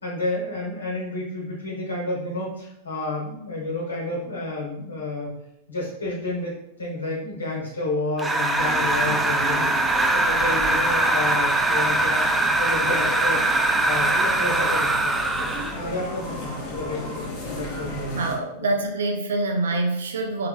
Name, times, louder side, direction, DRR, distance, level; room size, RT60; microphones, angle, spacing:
voice 1, 0.0-5.3 5.7-13.4 13.8-15.2 15.7-18.3, left 2 dB, 75° left, -4 dB, 1.1 m, -30 dB
sound 1, 8.2-15.8, right 2 dB, 10° right, 0.3 m, -22 dB
sound 2, 8.5-18.3, left 1 dB, 30° left, 1.2 m, -34 dB
voice 2, 18.1-20.5, right 2 dB, 65° right, 3 dB, 0.6 m, -25 dB
4.5 x 2.8 x 2.3 m, 0.81 s
figure-of-eight pair, 90°, 0 cm